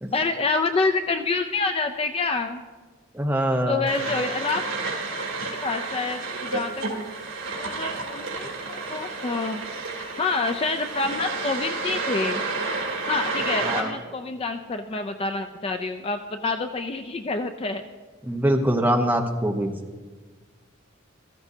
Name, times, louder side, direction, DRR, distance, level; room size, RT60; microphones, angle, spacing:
voice 1, 0.1-2.6 3.7-4.6 5.6-7.0 7.6-9.6 10.2-12.4 13.1-17.8, left 3 dB, 25° left, 7 dB, 0.4 m, -27 dB
voice 2, 3.1-3.9 13.6-13.9 18.2-19.7, right 1 dB, 10° right, 2 dB, 0.8 m, -23 dB
sound 1, 3.9-13.8, right 3 dB, 70° right, 2.8 m, -31 dB
14.5 x 14.0 x 2.7 m, 1.4 s
head